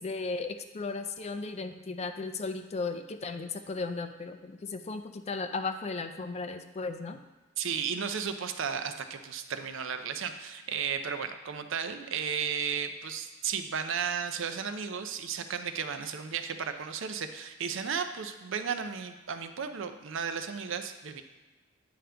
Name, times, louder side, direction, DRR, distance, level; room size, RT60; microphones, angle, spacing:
voice 1, 0.0-7.2, left 3 dB, 35° left, 8 dB, 0.4 m, -35 dB
voice 2, 7.6-21.2, right 7 dB, 70° right, 8 dB, 0.5 m, -34 dB
8.9 x 5.0 x 3.4 m, 1.2 s
head